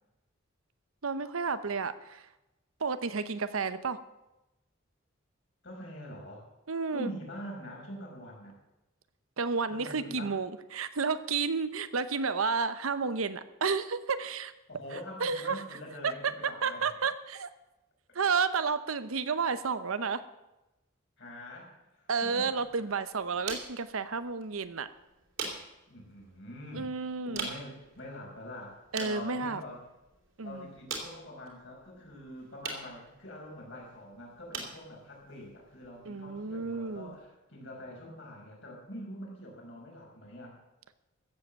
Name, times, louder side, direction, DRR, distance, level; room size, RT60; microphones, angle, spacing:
voice 1, 1.0-2.3 2.8-4.0 6.7-7.1 9.4-14.5 14.9-15.6 16.0-17.5 18.1-20.2 22.1-24.9 26.7-27.5 28.9-29.6 30.4-30.7 36.1-37.2, right 5 dB, 85° right, 12 dB, 0.9 m, -31 dB
voice 2, 5.6-6.5 6.9-8.6 9.7-10.3 14.7-17.0 21.2-22.6 25.9-26.9 27.3-29.8 30.4-40.6, equal, 60° left, -1 dB, 5.1 m, -44 dB
sound 1, 22.2-37.3, right 4 dB, 70° right, 3.3 m, -45 dB
14.5 x 7.9 x 7.4 m, 0.96 s
head